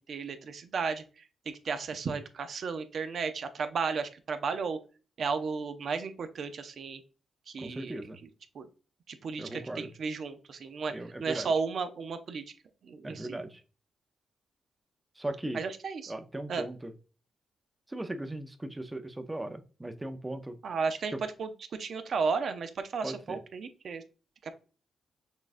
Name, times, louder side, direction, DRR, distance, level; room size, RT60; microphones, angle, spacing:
voice 1, 0.1-1.3 1.6-4.8 5.2-7.0 7.5-8.0 8.5-8.7 9.1-10.9 11.2-12.4 12.8-13.4 15.5-16.1 16.5-16.7 20.6-21.1 21.4-24.0 24.4-24.5, right 5 dB, 60° right, 0.6 m, -34 dB
voice 2, 7.6-8.2 9.4-9.9 10.9-11.5 13.0-13.6 15.2-15.6 16.1-16.9 17.9-20.6 23.0-23.4, right 1 dB, 15° right, 0.6 m, -38 dB
6.2 x 2.4 x 2.5 m
cardioid pair, 80°, 0 cm